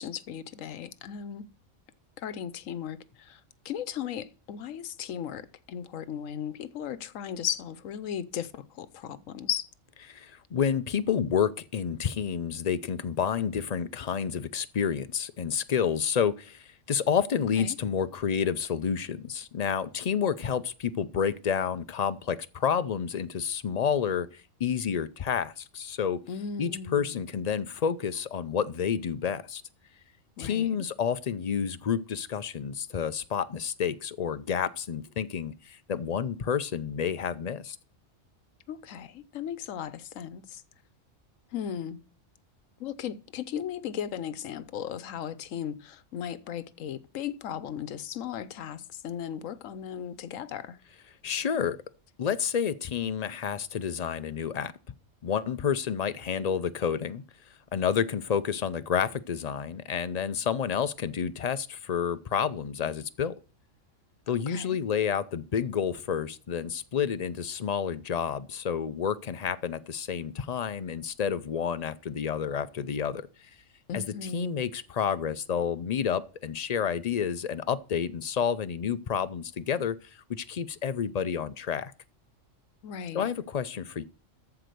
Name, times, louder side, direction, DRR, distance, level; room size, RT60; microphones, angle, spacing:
voice 1, 0.0-1.5 2.2-9.7 17.6-17.8 26.3-27.2 30.4-30.8 38.7-40.6 41.5-42.0 42.8-50.8 64.5-64.8 73.9-74.6 82.8-83.3, left 9 dB, 90° left, 1.1 m, -36 dB
voice 2, 10.1-26.2 26.6-29.6 30.4-37.8 51.2-51.8 52.2-54.7 55.2-57.2 57.7-63.3 64.3-73.3 73.9-74.0 74.3-81.9 83.1-84.0, left 7 dB, 45° left, 0.5 m, -29 dB
14.0 x 4.8 x 6.7 m
omnidirectional pair, 1.3 m